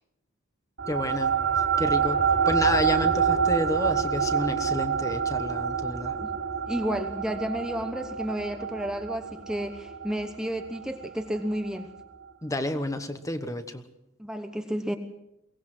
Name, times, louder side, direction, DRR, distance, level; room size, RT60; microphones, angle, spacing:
sound 1, 0.8-11.6, right 6 dB, 75° right, 3.6 m, -27 dB
voice 1, 0.9-6.2 12.4-13.8, left 1 dB, 15° left, 9 dB, 1.2 m, -30 dB
voice 2, 6.7-11.9 14.2-15.0, equal, 5° right, 6 dB, 1.0 m, -31 dB
23.0 x 18.5 x 6.2 m, 0.87 s
head